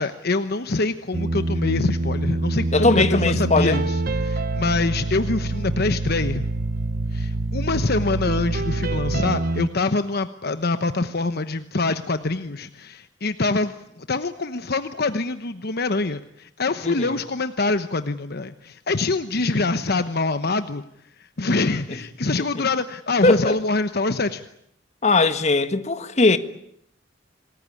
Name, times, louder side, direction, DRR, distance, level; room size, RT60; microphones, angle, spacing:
voice 1, 0.0-6.4 7.1-20.8 21.2-24.4, left 3 dB, 55° left, 1.1 m, -25 dB
sound 1, 1.1-9.7, right 2 dB, 50° right, 1.1 m, -25 dB
voice 2, 2.7-3.8 16.8-17.2 23.2-23.5 25.0-26.4, left 3 dB, 35° left, 1.5 m, -19 dB
27.5 x 20.0 x 9.9 m
head